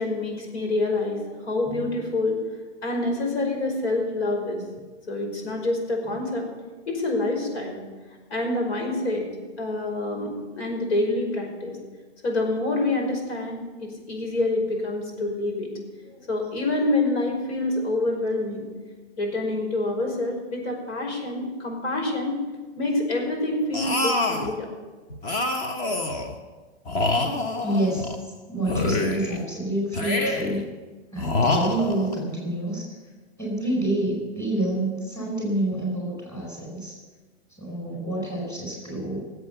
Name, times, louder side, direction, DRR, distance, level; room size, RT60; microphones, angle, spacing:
voice 1, 0.0-2.4 2.8-4.6 5.1-6.5 6.9-7.8 8.3-9.2 9.6-11.8 12.2-15.7 16.3-18.7 19.2-22.4 22.8-24.7, left 2 dB, 70° left, 2 dB, 5.3 m, -27 dB
sound 1, 23.7-24.5 25.2-26.3 26.9-28.2 28.6-29.4 29.9-30.6 31.2-32.2, left 2 dB, 25° left, 1.2 m, -26 dB
voice 2, 27.1-28.1 28.5-30.6 31.1-32.9 33.4-36.9 37.6-39.4, right 1 dB, 10° left, -2 dB, 4.8 m, -28 dB
17.5 x 8.0 x 7.0 m, 1.3 s
hypercardioid pair, 150°, 34 cm